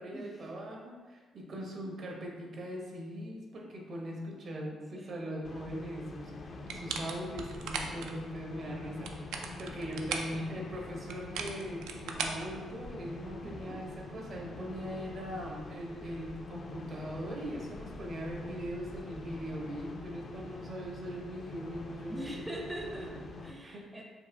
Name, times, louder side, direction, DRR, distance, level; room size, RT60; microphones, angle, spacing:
voice 1, 0.0-22.5 23.6-24.0, equal, 55° right, -1 dB, 0.9 m, -40 dB
voice 2, 4.9-5.4 10.3-10.7 13.4-13.8 22.1-24.0, right 1 dB, 10° right, -1 dB, 0.5 m, -43 dB
sound 1, 5.4-23.5, left 3 dB, 45° left, 0.4 m, -45 dB
sound 2, 6.7-8.1 8.9-10.4 11.1-13.1, right 5 dB, 90° right, 0.3 m, -38 dB
4.7 x 2.6 x 2.6 m, 1.4 s
cardioid pair, 90°, 0 cm